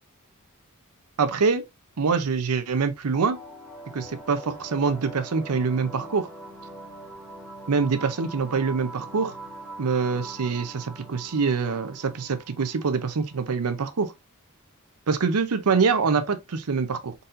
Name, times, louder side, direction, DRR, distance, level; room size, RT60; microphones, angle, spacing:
voice 1, 1.2-1.6 2.0-3.4 3.9-6.3 7.7-9.4 9.8-14.1 15.1-17.1, right 5 dB, 85° right, 0.6 m, -25 dB
sound 1, 3.1-14.1, right 2 dB, 5° left, 1.7 m, -43 dB
4.1 x 4.0 x 2.5 m
head